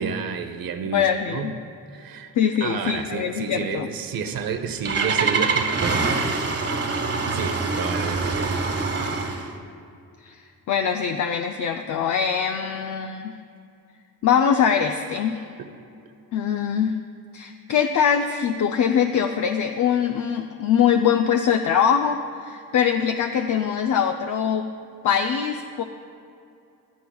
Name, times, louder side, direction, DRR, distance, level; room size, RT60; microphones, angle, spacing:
voice 1, 0.0-1.5 1.9-2.3 2.6-6.8 7.3-8.8 15.6-15.7, right 6 dB, 70° right, 8 dB, 0.9 m, -31 dB
voice 2, 0.9-1.6 2.4-3.9 10.2-10.4 10.7-13.3 14.2-15.4 16.3-17.0 17.3-24.7 25.0-25.8, left 8 dB, 55° left, 5 dB, 0.5 m, -22 dB
Engine starting, 4.3-9.5, right 4 dB, 40° right, 1.4 m, -25 dB
16.0 x 11.5 x 2.3 m, 2.5 s
cardioid pair, 95°, 36 cm